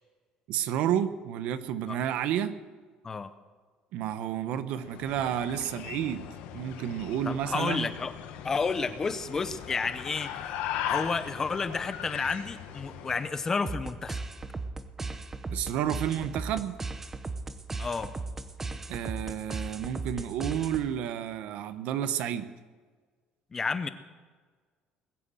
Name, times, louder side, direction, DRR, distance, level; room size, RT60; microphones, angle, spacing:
voice 1, 0.5-2.6 3.9-6.3 6.5-7.9 15.5-16.8 18.9-22.5, right 10 dB, 70° right, 12 dB, 0.9 m, -30 dB
sound 1, 4.8-13.4, left 10 dB, 90° left, 1.3 m, -39 dB
voice 2, 7.2-8.1 8.4-10.3 10.9-14.2 17.8-18.1 23.5-23.9, left 4 dB, 20° left, 12 dB, 0.8 m, -31 dB
sound 2, 13.6-21.1, right 3 dB, 15° right, 0.8 m, -37 dB
20.5 x 8.3 x 7.7 m, 1.5 s
cardioid pair, 150°, 2 cm